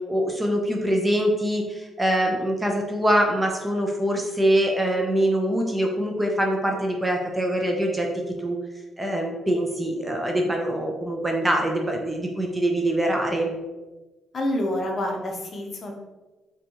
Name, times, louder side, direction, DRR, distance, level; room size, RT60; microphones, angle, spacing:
voice 1, 0.1-8.1 8.4-8.6 9.0-13.5, right 1 dB, 15° right, 1 dB, 0.5 m, -24 dB
voice 2, 14.3-15.9, left 1 dB, 45° left, 1 dB, 0.7 m, -27 dB
3.9 x 2.3 x 2.9 m, 1.1 s
cardioid pair, 90°, 0 cm